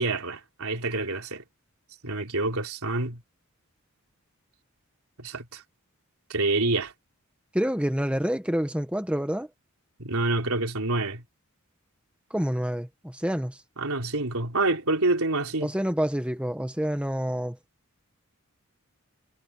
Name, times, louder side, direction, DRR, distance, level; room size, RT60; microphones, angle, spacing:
voice 1, 0.0-1.4 2.0-3.2 5.2-5.6 6.3-6.9 10.0-11.2 13.8-15.7, right 2 dB, 80° right, 3.6 m, -27 dB
voice 2, 7.5-9.5 12.3-13.6 15.6-17.6, equal, 5° right, 1.4 m, -27 dB
head